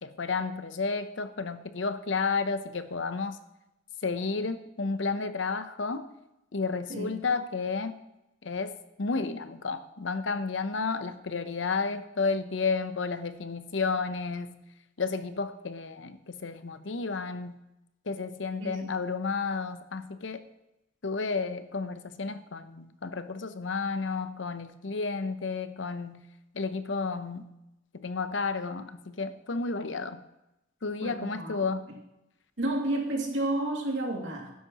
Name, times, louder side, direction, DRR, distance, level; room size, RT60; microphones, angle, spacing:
voice 1, 0.0-3.4 4.0-6.1 6.5-8.0 8.4-14.6 15.0-17.6 18.1-20.4 21.0-26.2 26.5-27.5 27.9-30.2 30.8-31.8, left 4 dB, 80° left, 11 dB, 0.8 m, -32 dB
voice 2, 18.6-19.0 31.0-31.7 32.6-34.5, right 1 dB, 85° right, -1 dB, 2.5 m, -31 dB
12.0 x 10.5 x 3.0 m, 0.91 s
head